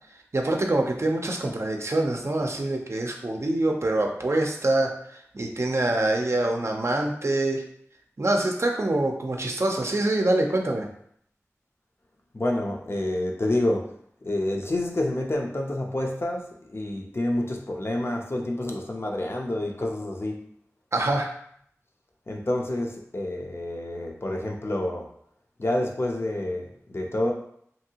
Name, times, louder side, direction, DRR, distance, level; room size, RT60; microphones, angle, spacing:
voice 1, 0.3-5.0 5.3-7.6 8.2-10.9 20.9-21.3, right 2 dB, 55° right, 0.5 m, -25 dB
voice 2, 12.3-13.9 14.2-20.5 22.3-25.1 25.6-27.3, left 1 dB, 50° left, 0.5 m, -28 dB
2.7 x 2.6 x 2.8 m
wide cardioid pair, 50°, 5 cm